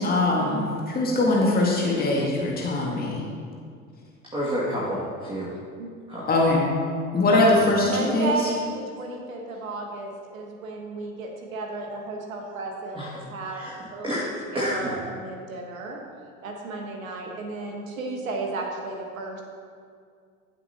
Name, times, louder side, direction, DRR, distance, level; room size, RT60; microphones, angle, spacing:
voice 1, 0.0-3.2 6.3-6.7 7.1-8.5, left 2 dB, 20° left, -3 dB, 2.1 m, -22 dB
voice 2, 4.3-5.5 6.1-6.3 7.5-7.7 12.9-13.2 13.5-15.0, equal, 10° right, -7 dB, 2.4 m, -30 dB
voice 3, 7.8-13.0 13.3-13.6 13.9-14.2 14.5-16.0 16.4-19.4, right 3 dB, 70° right, 1 dB, 1.5 m, -33 dB
15.0 x 7.8 x 3.0 m, 2.2 s
figure-of-eight pair, 70°, 41 cm